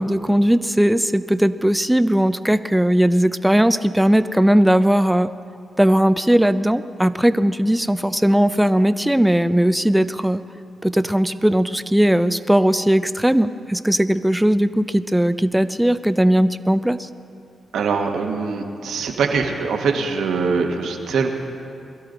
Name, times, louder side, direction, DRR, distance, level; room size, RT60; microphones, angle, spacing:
voice 1, 0.0-5.3 5.8-10.4 10.8-17.1, equal, 5° right, 12 dB, 0.7 m, -18 dB
voice 2, 17.7-21.3, right 5 dB, 75° right, 3 dB, 1.5 m, -22 dB
22.5 x 12.5 x 4.0 m, 2.5 s
hypercardioid pair, 40°, 0 cm